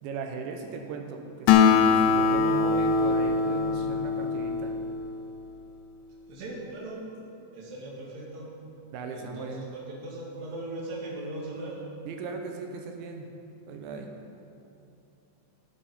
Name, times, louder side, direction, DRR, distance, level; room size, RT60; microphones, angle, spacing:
voice 1, 0.0-4.7 8.9-9.7 12.1-13.3 13.7-14.1, right 4 dB, 80° right, 3 dB, 3.1 m, -37 dB
Acoustic guitar, 1.5-5.2, left 5 dB, 80° left, 2.8 m, -22 dB
voice 2, 6.3-7.0 7.5-8.5 9.1-11.9, right 2 dB, 50° right, -4 dB, 2.8 m, -39 dB
13.0 x 9.2 x 5.4 m, 2.8 s
omnidirectional pair, 5.4 m